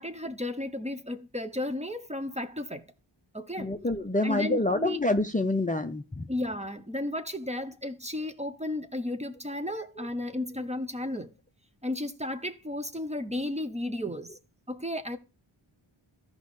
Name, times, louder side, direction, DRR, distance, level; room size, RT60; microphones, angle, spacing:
voice 1, 0.0-2.8 3.3-3.7 4.2-5.0 6.3-11.3 11.8-14.4 14.7-15.2, left 1 dB, 15° right, 0.8 m, -33 dB
voice 2, 3.6-6.3 10.0-10.1, left 2 dB, 15° left, 0.6 m, -27 dB
13.5 x 5.3 x 3.2 m
cardioid pair, 50°, 49 cm